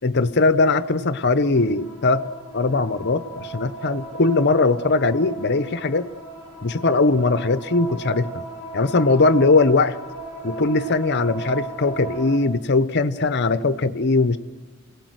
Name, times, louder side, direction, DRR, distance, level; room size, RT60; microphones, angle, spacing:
voice 1, 0.0-2.3 2.5-6.1 6.6-8.4 8.7-10.0 10.4-14.4, left 3 dB, 50° left, 13 dB, 0.8 m, -20 dB
sound 1, 1.5-12.4, right 3 dB, ahead, 7.8 m, -36 dB
27.5 x 18.5 x 7.9 m, 1.3 s
head